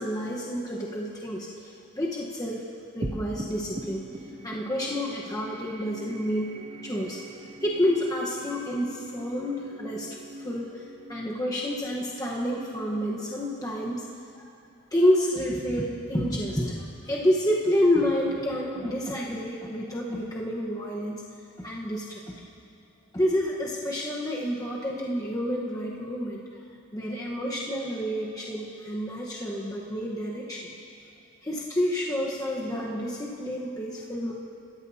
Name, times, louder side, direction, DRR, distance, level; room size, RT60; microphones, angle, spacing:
voice 1, 0.0-2.6 2.9-4.1 4.4-6.5 6.8-7.3 7.6-10.1 10.4-10.8 11.1-14.0 14.3-14.4 14.9-21.2 21.6-22.2 23.1-26.4 26.9-30.7 31.4-34.3, equal, 15° left, -4 dB, 1.1 m, -29 dB
sound 1, 3.0-13.7, right 1 dB, 25° right, 0.7 m, -42 dB
26.5 x 14.0 x 2.8 m, 2.5 s
head